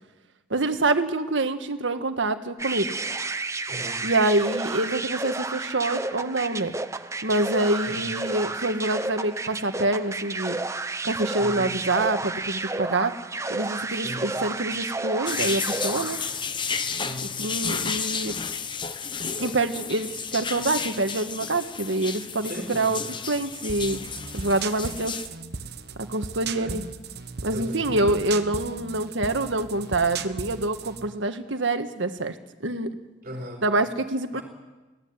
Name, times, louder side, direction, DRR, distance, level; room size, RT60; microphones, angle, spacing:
voice 1, 0.5-2.9 4.0-6.7 7.2-10.6 11.0-13.1 13.5-16.2 17.4-18.4 19.4-23.0 23.3-24.0 24.3-25.2 26.0-26.8 27.4-32.4 32.6-32.9 33.6-34.4, right 2 dB, 75° right, 8 dB, 1.6 m, -26 dB
sound 1, 2.6-16.4, right 3 dB, 15° right, 0.7 m, -31 dB
voice 2, 3.7-4.0 7.8-8.2 11.4-11.8 13.9-14.4 16.9-17.5 22.4-23.2 26.5-26.9 27.5-28.1 33.2-33.7 34.3-34.4, equal, 40° right, 0 dB, 3.8 m, -38 dB
sound 2, 15.3-25.3, left 6 dB, 25° left, 0.9 m, -32 dB
sound 3, 23.7-31.1, right 5 dB, 55° right, 1.2 m, -36 dB
22.0 x 16.0 x 9.7 m, 1.2 s
head